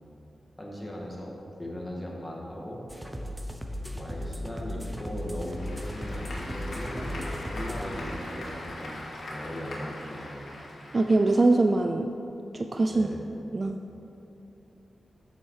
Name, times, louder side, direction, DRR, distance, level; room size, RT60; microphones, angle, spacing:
voice 1, 0.6-1.3 1.6-2.8 3.9-10.5 12.9-13.2, equal, 10° left, -3 dB, 1.9 m, -38 dB
sound 1, 2.9-7.9, left 1 dB, 5° right, 0.9 m, -36 dB
Applause / Crowd, 5.2-11.7, left 1 dB, 70° left, 2.5 m, -41 dB
voice 2, 10.9-12.1 12.5-13.1 13.5-13.8, right 2 dB, 30° right, 5 dB, 0.4 m, -23 dB
14.5 x 7.2 x 4.8 m, 2.9 s
wide cardioid pair, 155°, 0 cm